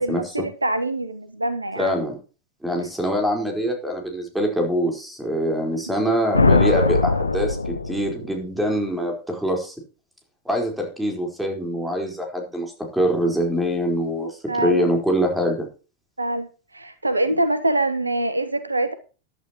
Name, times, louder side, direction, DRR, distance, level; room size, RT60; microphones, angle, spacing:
voice 1, 0.0-1.9 14.5-14.9 16.2-18.9, right 2 dB, 80° right, 12 dB, 1.1 m, -24 dB
voice 2, 1.8-2.2 2.6-9.7 10.4-15.7, equal, 5° right, 2 dB, 4.4 m, -24 dB
sound 1, 6.3-8.5, left 3 dB, 80° left, 0.7 m, -20 dB
14.5 x 11.0 x 3.0 m, 0.35 s
figure-of-eight pair, 90°, 0 cm